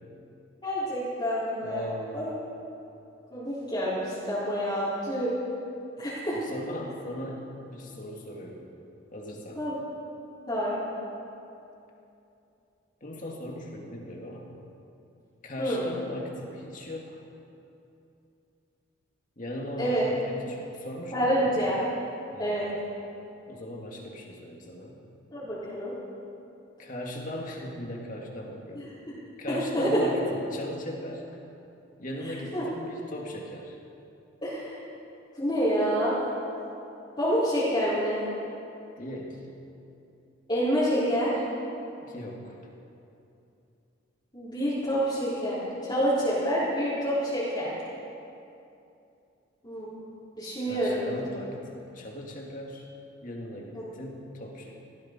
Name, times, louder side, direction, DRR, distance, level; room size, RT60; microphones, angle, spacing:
voice 1, 0.6-1.9 2.1-2.3 3.3-5.3 6.0-6.4 9.6-9.7 10.5-10.8 15.6-15.8 19.8-20.0 21.1-21.8 22.4-22.7 25.3-25.9 28.7-28.8 29.5-30.0 32.5-32.6 34.4-34.8 35.4-36.2 37.2-38.2 40.5-41.3 44.3-47.7 49.6-49.9 50.4-51.2 53.7-53.9, equal, 25° left, -13 dB, 3.7 m, -27 dB
voice 2, 1.6-2.3 6.3-8.6 9.1-9.6 13.0-14.5 15.4-17.2 19.4-21.6 22.3-22.6 23.5-25.0 26.8-28.9 29.4-31.2 32.0-33.7 39.0-39.4 42.0-42.6 50.6-52.9 53.2-54.7, left 1 dB, 40° left, -1 dB, 2.2 m, -38 dB
18.5 x 15.0 x 4.4 m, 2.7 s
head